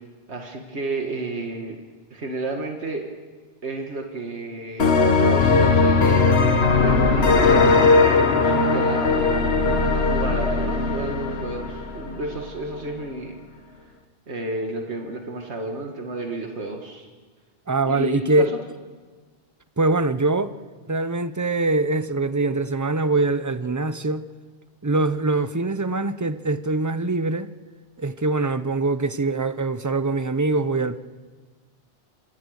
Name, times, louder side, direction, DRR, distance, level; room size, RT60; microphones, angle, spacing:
voice 1, 0.3-1.8 2.1-3.1 3.6-6.5 6.8-9.8 10.1-13.4 14.3-17.1 17.8-18.5, right 2 dB, 80° right, 2.1 m, -31 dB
sound 1, 4.8-12.4, left 4 dB, 70° left, 1.7 m, -19 dB
voice 2, 17.7-18.5 19.8-20.5 20.9-24.3 24.8-27.5 28.0-31.0, right 3 dB, 20° right, 0.7 m, -23 dB
27.0 x 26.0 x 6.5 m
omnidirectional pair, 1.1 m